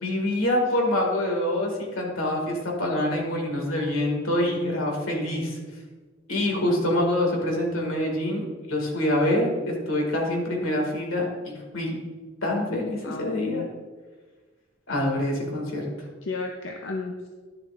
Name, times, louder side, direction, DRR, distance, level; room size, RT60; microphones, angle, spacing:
voice 1, 0.0-5.6 6.3-11.9 12.4-13.6 14.9-15.8, left 1 dB, 90° left, 0 dB, 2.0 m, -26 dB
voice 2, 12.7-13.7 16.2-17.3, left 4 dB, 65° left, 2 dB, 0.6 m, -33 dB
10.0 x 6.9 x 2.5 m, 1.3 s
head